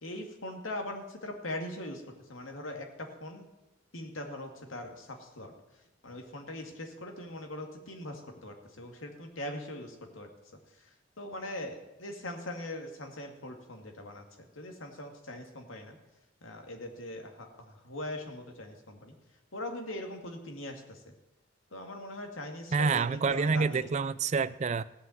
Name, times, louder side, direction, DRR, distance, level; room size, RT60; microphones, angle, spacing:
voice 1, 0.0-2.0 2.3-3.5 3.9-5.5 6.0-10.3 11.2-14.2 14.6-16.0 16.4-19.1 19.5-21.1 21.7-23.9, left 1 dB, 80° left, 4 dB, 2.2 m, -41 dB
voice 2, 22.7-24.8, right 5 dB, 35° right, 15 dB, 0.4 m, -27 dB
16.5 x 5.8 x 9.3 m, 0.97 s
head